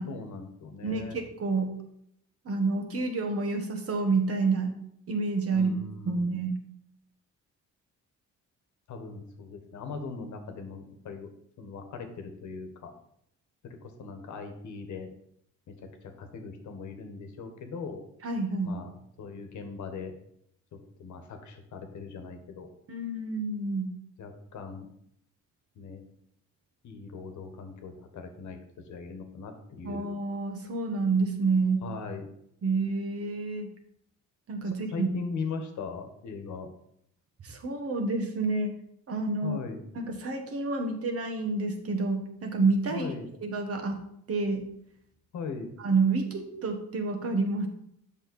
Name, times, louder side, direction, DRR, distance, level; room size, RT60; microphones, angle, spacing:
voice 1, 0.0-1.2 5.5-6.3 8.9-11.3 11.6-12.9 13.6-15.1 15.7-18.0 18.6-20.1 21.0-22.7 24.2-24.9 25.7-26.0 26.8-30.0 31.8-32.3 34.6-36.7 39.4-39.8 42.9-43.3 45.3-45.8, left 4 dB, 70° left, 6 dB, 1.3 m, -40 dB
voice 2, 0.8-1.7 2.4-4.7 5.1-5.7 6.1-6.6 18.2-18.8 22.9-23.9 29.8-31.8 32.6-33.7 34.5-35.1 37.4-38.7 39.1-39.6 39.9-43.1 43.4-44.0 44.3-44.6 45.8-47.7, right 3 dB, 50° right, 4 dB, 1.4 m, -28 dB
7.1 x 5.6 x 4.2 m, 0.73 s
cardioid pair, 90°, 30 cm